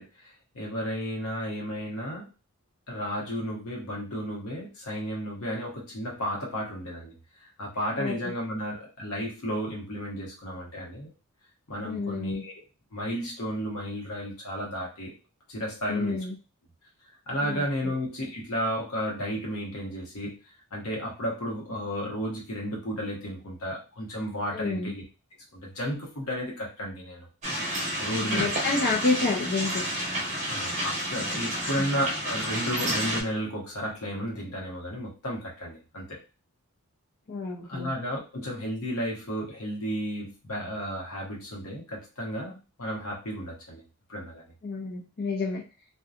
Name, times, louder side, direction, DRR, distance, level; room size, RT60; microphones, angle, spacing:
voice 1, 0.0-2.3 2.9-7.1 7.6-11.1 11.7-12.5 12.9-15.1 15.5-16.2 17.3-20.4 20.7-25.0 25.5-27.3 28.0-28.6 30.5-36.2 37.7-43.8 44.1-44.4, equal, 80° left, -2 dB, 1.0 m, -33 dB
voice 2, 8.0-8.3 11.8-12.4 15.9-16.3 17.4-17.9 24.5-24.9 28.2-29.8 31.8-31.9 37.3-37.9 44.6-45.6, left 3 dB, 50° left, -4 dB, 0.6 m, -29 dB
sound 1, 27.4-33.2, equal, 35° right, 0.8 m, -30 dB
2.7 x 2.2 x 2.4 m, 0.33 s
head